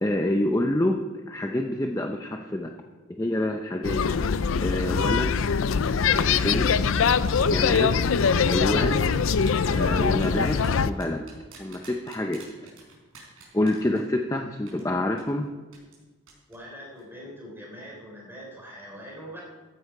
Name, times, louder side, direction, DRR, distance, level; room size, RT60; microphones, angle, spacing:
voice 1, 0.0-2.7 3.1-4.0 4.6-5.3 6.1-6.8 7.4-8.0 8.4-9.1 9.7-11.3 11.6-12.5 13.5-15.5, left 1 dB, 15° left, 3 dB, 0.5 m, -27 dB
sound 1, 3.8-10.9, left 5 dB, 80° left, 0.5 m, -23 dB
sound 2, 7.1-7.4 8.1-14.4 14.7-14.8 15.2-15.3 15.7-16.0 16.3-16.6 16.9-17.0, right 5 dB, 85° right, 4.6 m, -49 dB
voice 2, 16.5-19.4, equal, 10° right, -3 dB, 3.6 m, -42 dB
14.5 x 9.9 x 4.9 m, 1.3 s
head